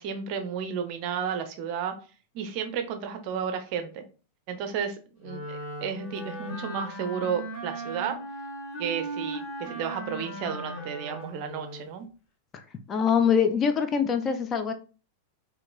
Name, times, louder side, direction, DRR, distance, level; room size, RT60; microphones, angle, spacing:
voice 1, 0.0-2.0 2.3-4.0 4.5-8.2 8.8-12.1, right 7 dB, 45° right, 7 dB, 0.5 m, -32 dB
Wind instrument woodwind instrument, 5.2-11.9, right 1 dB, 45° left, 1.4 m, -37 dB
voice 2, 12.9-14.7, left 7 dB, 25° left, 9 dB, 0.3 m, -24 dB
2.8 x 2.5 x 2.3 m, 0.35 s
figure-of-eight pair, 90°, 0 cm